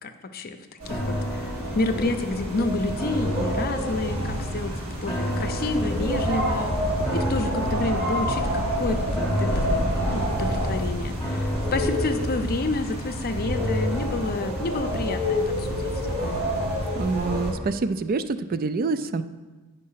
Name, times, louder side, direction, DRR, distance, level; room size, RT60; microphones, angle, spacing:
voice 1, 0.0-0.6 0.8-6.8 7.1-16.4, left 2 dB, 45° left, 7 dB, 0.6 m, -29 dB
sound 1, 0.8-17.5, equal, 75° right, 3.4 m, -28 dB
sound 2, 0.9-16.2 16.6-16.7, equal, ahead, 2.0 m, -34 dB
voice 2, 17.0-19.2, right 4 dB, 40° right, 12 dB, 0.4 m, -26 dB
9.3 x 5.2 x 5.7 m, 1.2 s
head